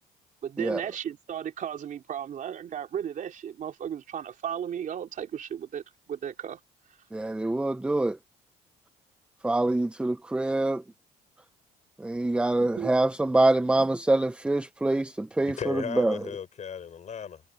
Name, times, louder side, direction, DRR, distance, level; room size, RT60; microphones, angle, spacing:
voice 1, 0.4-6.6 12.6-12.9, right 9 dB, 50° right, 3.4 m, -35 dB
voice 2, 7.1-8.2 9.4-10.8 12.0-16.2, right 2 dB, 5° right, 0.7 m, -25 dB
voice 3, 15.4-17.4, left 7 dB, 45° left, 6.8 m, -36 dB
cardioid pair, 110°, 17 cm